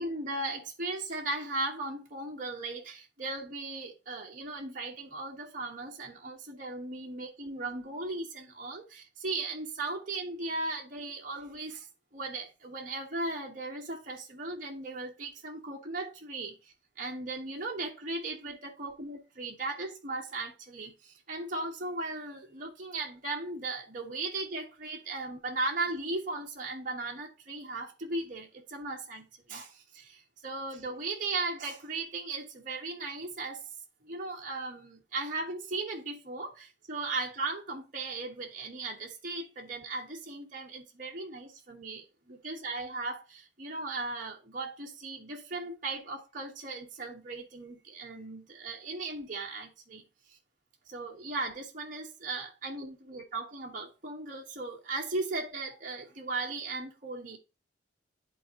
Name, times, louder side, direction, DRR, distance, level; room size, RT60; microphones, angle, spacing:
voice 1, 0.0-11.9 12.1-33.7 34.0-50.4 50.9-57.4, right 2 dB, 45° right, 1.2 m, -37 dB
10.5 x 4.1 x 2.8 m
head